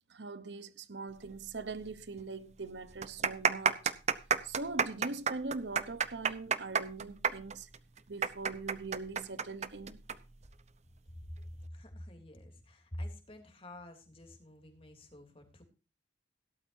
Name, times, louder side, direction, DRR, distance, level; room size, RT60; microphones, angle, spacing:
voice 1, 0.1-3.9 4.4-7.7 8.1-10.0, right 3 dB, 75° right, 1.0 m, -42 dB
sound 1, 1.8-1.9 2.2-2.3 2.9-10.2 10.4-10.5 11.3-11.6, right 6 dB, 40° right, 0.8 m, -30 dB
voice 2, 11.7-15.6, left 1 dB, 30° left, 3.2 m, -47 dB
17.0 x 13.0 x 2.7 m
head